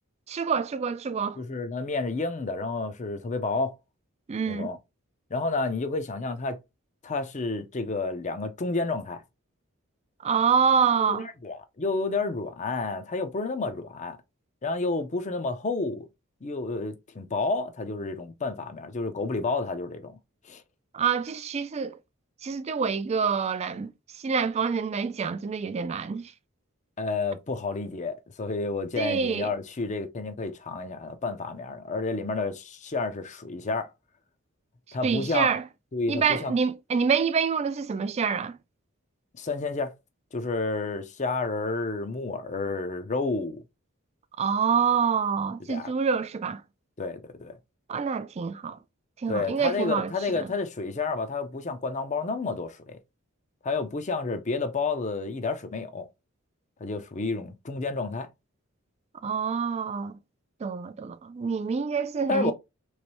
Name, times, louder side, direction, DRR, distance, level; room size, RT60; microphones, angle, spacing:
voice 1, 0.3-1.4 4.3-4.7 10.2-11.3 20.9-22.0 22.4-23.9 24.2-26.2 29.0-29.5 35.0-35.6 36.1-38.6 44.4-46.6 47.9-48.8 49.2-50.5 59.2-60.2 60.6-62.5, right 6 dB, 30° right, 0.3 m, -26 dB
voice 2, 1.4-3.7 4.5-4.8 5.3-6.6 7.0-9.2 11.0-14.2 14.6-16.1 16.4-20.2 20.5-20.6 27.0-33.9 34.9-35.5 35.9-36.5 39.4-39.9 40.3-43.6 45.7-45.9 47.0-47.6 49.3-53.0 53.6-56.1 56.8-58.3 62.3-62.5, left 3 dB, 35° left, 0.5 m, -30 dB
3.2 x 3.1 x 3.0 m
head